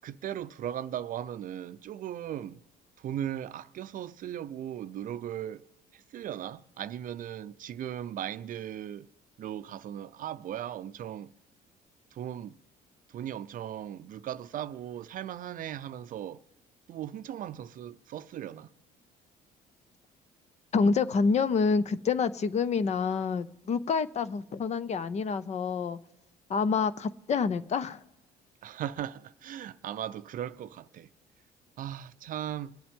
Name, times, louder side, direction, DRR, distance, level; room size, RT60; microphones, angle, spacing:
voice 1, 0.0-2.6 3.0-5.6 5.9-9.1 9.4-11.3 12.1-12.6 13.1-16.4 16.9-18.7 28.6-31.1 31.8-32.8, right 10 dB, 55° right, 0.5 m, -38 dB
voice 2, 20.7-26.0 26.5-28.0, left 5 dB, 40° left, 0.6 m, -27 dB
25.0 x 8.6 x 3.6 m
cardioid pair, 110°, 17 cm